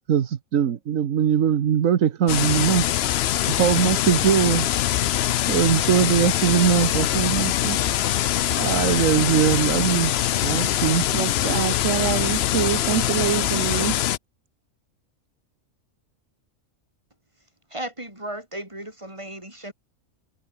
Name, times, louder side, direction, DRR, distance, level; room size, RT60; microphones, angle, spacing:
voice 1, 0.1-2.9 3.5-4.8 5.5-7.8 8.6-10.1 10.4-11.0, right 9 dB, 90° right, 1.4 m, -21 dB
sound 1, 2.3-14.2, left 12 dB, 60° left, 0.7 m, -23 dB
voice 2, 11.1-14.0, right 11 dB, 70° right, 1.1 m, -25 dB
voice 3, 17.7-19.7, right 1 dB, 20° right, 5.5 m, -35 dB
omnidirectional pair, 1.4 m